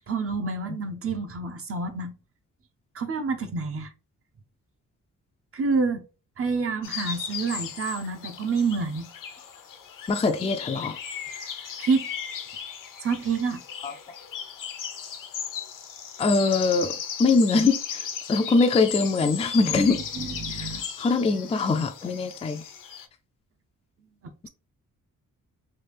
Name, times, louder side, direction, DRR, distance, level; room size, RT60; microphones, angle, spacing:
voice 1, 0.1-2.1 2.9-3.9 5.5-6.0 6.4-9.1 11.8-12.1 13.0-13.6 19.2-19.3 19.6-20.8, right 4 dB, 45° right, 0.6 m, -28 dB
sound 1, 6.8-23.1, left 8 dB, 70° left, 0.6 m, -36 dB
voice 2, 10.1-11.0 13.8-13.9 16.2-16.9 17.2-20.0 20.5-22.6, left 3 dB, 20° left, 0.3 m, -23 dB
3.3 x 2.4 x 3.2 m
cardioid pair, 105°, 33 cm